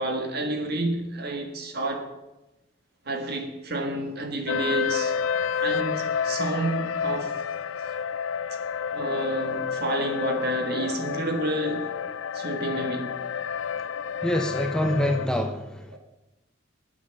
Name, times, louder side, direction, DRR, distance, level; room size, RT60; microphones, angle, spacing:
voice 1, 0.0-2.1 3.0-5.2 5.6-7.4 7.8-8.0 8.9-11.9 12.3-13.2 15.9-16.0, right 2 dB, 55° right, 4 dB, 1.7 m, -30 dB
sound 1, 4.5-15.3, left 7 dB, 85° left, 0.4 m, -30 dB
voice 2, 14.2-16.0, left 1 dB, 5° left, 5 dB, 0.7 m, -26 dB
9.4 x 8.3 x 6.7 m, 1.0 s
head